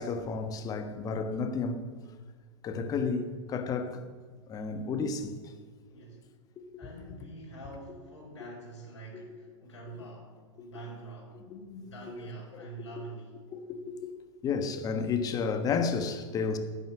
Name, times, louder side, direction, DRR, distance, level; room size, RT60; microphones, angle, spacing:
voice 1, 0.0-1.8 2.6-4.0 4.5-5.4 6.6-6.7 11.5-11.9 13.5-14.1 14.4-16.6, left 5 dB, 20° left, 1.3 m, -32 dB
voice 2, 5.9-6.2 6.8-11.4 11.8-13.4, right 3 dB, 65° left, 5.1 m, -46 dB
11.0 x 10.0 x 7.8 m
figure-of-eight pair, 100°, 16 cm